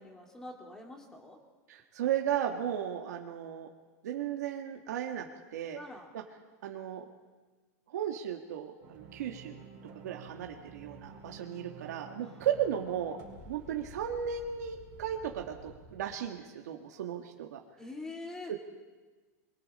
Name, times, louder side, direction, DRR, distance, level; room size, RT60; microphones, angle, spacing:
voice 1, 0.0-1.4 5.8-6.1 12.2-12.5 13.2-13.4 17.8-18.5, left 2 dB, 5° left, 1 dB, 2.6 m, -45 dB
voice 2, 1.7-3.7 4.0-5.3 5.5-5.8 6.1-6.2 6.6-7.0 7.9-9.6 10.0-13.2 13.5-17.6 18.5-18.6, right 9 dB, 85° right, 2 dB, 1.8 m, -35 dB
sound 1, 8.8-16.0, right 3 dB, 35° right, 4.9 m, -51 dB
28.0 x 23.5 x 4.3 m, 1.3 s
supercardioid pair, 175°, 9 cm